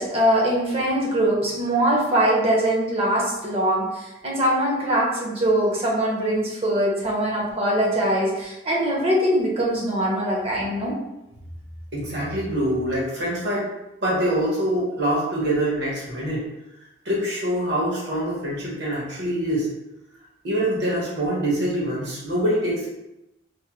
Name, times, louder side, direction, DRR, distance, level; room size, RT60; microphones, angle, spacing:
voice 1, 0.0-10.9, right 1 dB, 35° right, -3 dB, 0.7 m, -22 dB
voice 2, 11.9-13.7 14.0-16.5 17.0-19.7 20.4-22.9, right 1 dB, 65° right, -6 dB, 1.2 m, -24 dB
3.3 x 2.1 x 2.9 m, 0.93 s
head